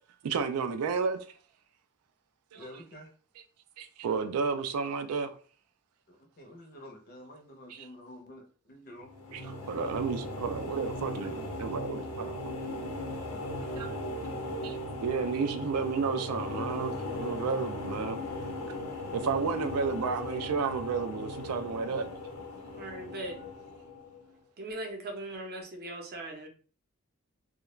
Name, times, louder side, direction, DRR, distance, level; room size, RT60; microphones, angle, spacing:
voice 1, 0.2-1.3 2.5-2.8 3.8-5.3 7.7-7.9 9.3-12.4 13.8-13.9 14.6-18.2 19.1-22.1, right 5 dB, 85° right, 0.3 m, -32 dB
voice 2, 2.5-3.1 6.1-9.1, left 1 dB, 40° left, 0.5 m, -49 dB
sound 1, 9.0-24.3, left 1 dB, 90° left, 0.7 m, -38 dB
voice 3, 22.7-23.5 24.6-26.5, right 1 dB, 45° right, 0.6 m, -39 dB
2.3 x 2.1 x 3.0 m
head